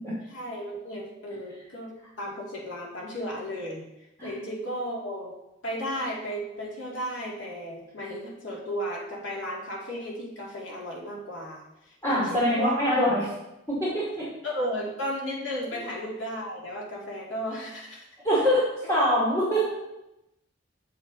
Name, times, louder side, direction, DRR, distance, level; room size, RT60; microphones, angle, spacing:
voice 1, 0.3-3.9 4.2-5.3 5.6-12.8 14.4-18.1 19.4-19.5, equal, 80° left, -3 dB, 2.6 m, -34 dB
voice 2, 12.0-13.3 13.7-14.3 18.2-19.8, equal, 15° left, -10 dB, 2.7 m, -24 dB
8.1 x 7.4 x 4.0 m, 0.91 s
head